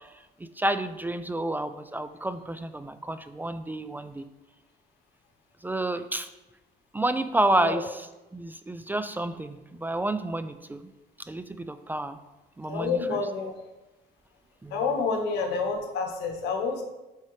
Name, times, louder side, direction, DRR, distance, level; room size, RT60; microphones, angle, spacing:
voice 1, 0.4-4.3 5.6-6.3 6.9-8.1 8.3-10.8 11.3-12.2 12.6-13.2 14.6-14.8, right 1 dB, 10° right, 10 dB, 0.3 m, -30 dB
voice 2, 12.7-13.5 14.7-16.8, left 4 dB, 85° left, 3 dB, 1.3 m, -28 dB
8.7 x 4.8 x 3.2 m, 1.1 s
cardioid pair, 110°, 17 cm